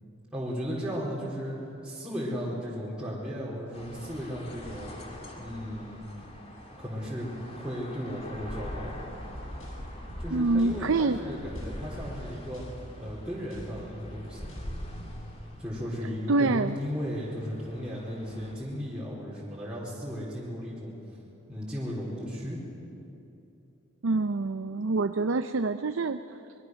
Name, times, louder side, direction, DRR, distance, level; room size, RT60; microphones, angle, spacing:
voice 1, 0.3-1.6 1.8-4.9 5.4-6.0 6.8-9.0 10.2-12.6 13.0-14.6 15.6-20.9 21.5-22.6, equal, 5° right, -7 dB, 4.0 m, -35 dB
sound 1, 3.7-18.6, equal, 30° left, 2.6 m, -43 dB
sound 2, 8.9-15.2, equal, 75° left, 7.1 m, -46 dB
voice 2, 10.3-11.2 16.3-16.8 24.0-26.4, right 3 dB, 70° right, 10 dB, 0.6 m, -26 dB
24.5 x 22.0 x 6.4 m, 2.8 s
head